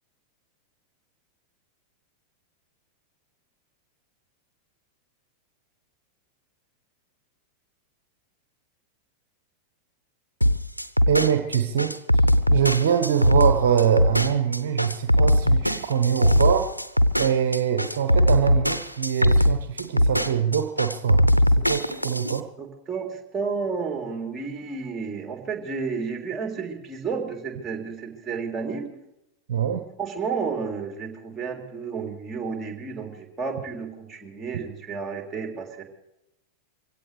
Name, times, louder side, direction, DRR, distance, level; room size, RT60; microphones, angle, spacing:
sound 1, 10.4-22.4, equal, 90° right, 0.7 m, -20 dB
voice 1, 11.1-16.7 17.2-22.5 29.5-29.8, right 8 dB, 55° right, 6 dB, 1.0 m, -24 dB
voice 2, 22.6-28.9 30.0-35.8, right 5 dB, 15° right, 2 dB, 3.4 m, -31 dB
23.5 x 16.5 x 3.4 m, 0.88 s
figure-of-eight pair, 90°, 0 cm